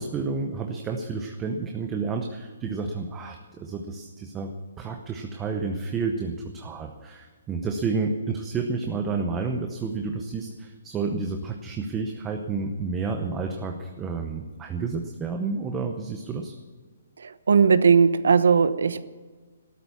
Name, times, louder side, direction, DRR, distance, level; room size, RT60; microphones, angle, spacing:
voice 1, 0.0-4.5 4.8-16.5, right 4 dB, 10° right, 4 dB, 0.8 m, -30 dB
voice 2, 17.2-19.0, right 5 dB, 80° right, 14 dB, 1.0 m, -18 dB
15.0 x 12.5 x 7.1 m, 1.4 s
hypercardioid pair, 170°, 0 cm